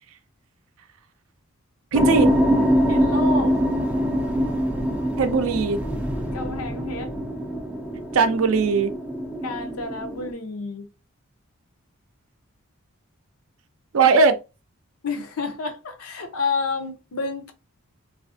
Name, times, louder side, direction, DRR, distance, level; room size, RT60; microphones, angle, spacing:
sound 1, 1.9-10.3, equal, 5° right, 0.3 m, -24 dB
voice 1, 1.9-2.3 5.2-5.8 8.1-8.9 13.9-14.4, right 4 dB, 75° right, 0.5 m, -19 dB
voice 2, 2.9-3.6 6.3-7.1 9.4-10.9 15.0-17.5, left 3 dB, 80° left, 0.6 m, -29 dB
3.3 x 2.5 x 2.5 m
head